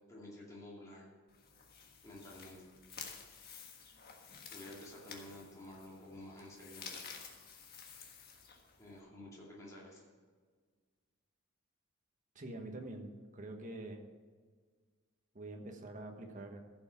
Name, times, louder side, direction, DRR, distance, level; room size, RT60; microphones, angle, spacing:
voice 1, 0.1-1.1 2.0-2.7 4.5-6.9 8.8-10.1, left 1 dB, 15° left, -6 dB, 2.4 m, -51 dB
sound 1, 1.3-9.0, left 6 dB, 50° left, 1.5 m, -52 dB
voice 2, 12.3-14.1 15.3-16.6, right 2 dB, 40° right, 3 dB, 1.3 m, -46 dB
15.0 x 6.0 x 5.8 m, 1.6 s
head